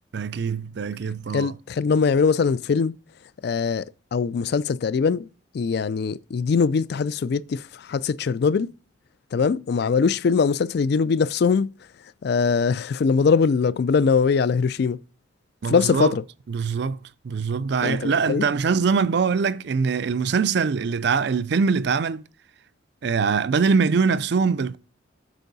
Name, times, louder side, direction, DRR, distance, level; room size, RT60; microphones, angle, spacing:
voice 1, 0.1-1.6 15.6-16.1 16.5-17.0 17.2-22.2 23.0-24.8, right 5 dB, 60° right, 0.4 m, -23 dB
voice 2, 1.3-3.0 3.4-3.9 4.1-5.3 5.5-8.7 9.3-11.7 12.2-15.0 15.7-16.2 17.8-18.5, left 5 dB, 55° left, 0.3 m, -22 dB
8.2 x 5.4 x 4.0 m
head